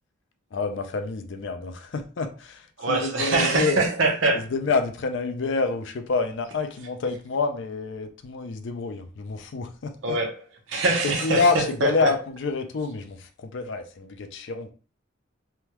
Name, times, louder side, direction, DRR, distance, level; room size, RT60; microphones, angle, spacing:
voice 1, 0.5-3.8 4.5-9.9 11.2-11.6 11.8-14.7, left 4 dB, 65° left, 0.4 m, -27 dB
voice 2, 2.8-4.4 10.0-12.1, right 3 dB, 65° right, 0.8 m, -24 dB
3.4 x 2.3 x 2.9 m
head